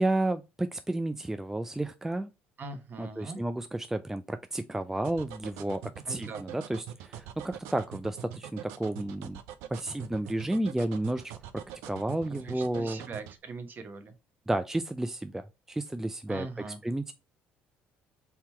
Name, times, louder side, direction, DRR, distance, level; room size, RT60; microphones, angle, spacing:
voice 1, 0.0-2.3 3.0-5.8 6.1-9.4 9.7-11.2 11.9-13.0 14.5-16.5 16.8-17.1, right 1 dB, 10° right, 0.4 m, -31 dB
voice 2, 2.6-3.4 6.1-6.4 12.4-14.1 16.3-16.8, right 3 dB, 45° right, 1.0 m, -41 dB
sound 1, 5.0-13.4, right 10 dB, 75° right, 0.5 m, -43 dB
3.7 x 2.8 x 4.3 m
hypercardioid pair, 65°, 5 cm